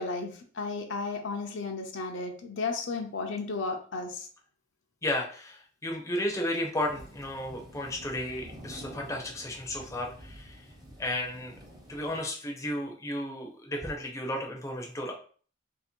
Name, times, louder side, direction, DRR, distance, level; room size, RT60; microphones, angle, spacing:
voice 1, 0.0-4.3, left 3 dB, 60° left, 3 dB, 0.7 m, -34 dB
voice 2, 5.0-10.6 11.0-11.5 11.9-15.1, left 1 dB, 15° left, 0 dB, 0.7 m, -33 dB
sound 1, 6.8-12.2, equal, 20° right, 0.9 m, -49 dB
3.1 x 2.8 x 4.3 m, 0.43 s
head